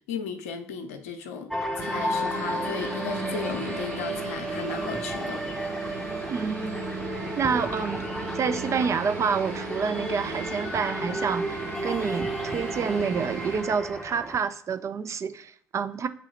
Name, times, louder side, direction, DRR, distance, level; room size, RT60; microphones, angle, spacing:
voice 1, 0.1-5.4, left 6 dB, 80° left, 0.5 m, -35 dB
sound 1, 1.5-14.4, right 1 dB, ahead, 0.7 m, -33 dB
sound 2, 1.8-13.6, right 3 dB, 85° right, 1.1 m, -36 dB
voice 2, 6.3-6.9 7.4-8.1 8.3-16.1, right 6 dB, 40° right, 0.4 m, -28 dB
3.1 x 2.7 x 4.1 m
figure-of-eight pair, 50°, 8 cm